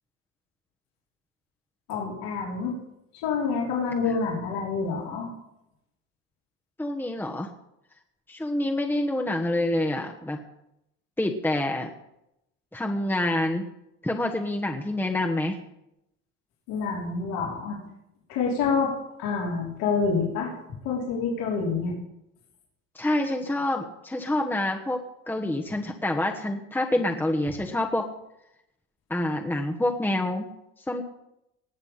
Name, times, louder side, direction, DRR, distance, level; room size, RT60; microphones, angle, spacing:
voice 1, 1.9-2.7 3.2-5.3 16.7-17.8 18.3-18.9 19.2-20.5 20.8-21.9, left 5 dB, 80° left, -3 dB, 4.1 m, -27 dB
voice 2, 6.8-7.5 8.3-10.4 11.2-11.9 12.7-13.6 14.0-15.6 22.9-28.1 29.1-30.5 30.9-31.0, left 1 dB, 5° left, 1 dB, 1.2 m, -27 dB
19.5 x 6.9 x 5.7 m, 0.85 s
supercardioid pair, 90°, 34 cm